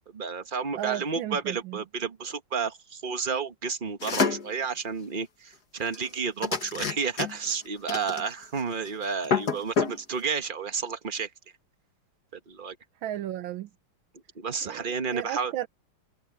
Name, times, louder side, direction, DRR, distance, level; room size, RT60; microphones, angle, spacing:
voice 1, 0.1-11.3 12.3-12.8 14.3-15.5, right 5 dB, 30° right, 1.3 m, -31 dB
voice 2, 0.7-1.8 13.0-13.7 14.6-15.7, right 12 dB, 75° right, 1.6 m, -34 dB
sound 1, 4.0-4.5 5.9-6.1 6.4-7.5 7.9-8.6 8.9-9.0 9.2-10.0, left 5 dB, 50° left, 2.3 m, -27 dB
omnidirectional pair, 2.2 m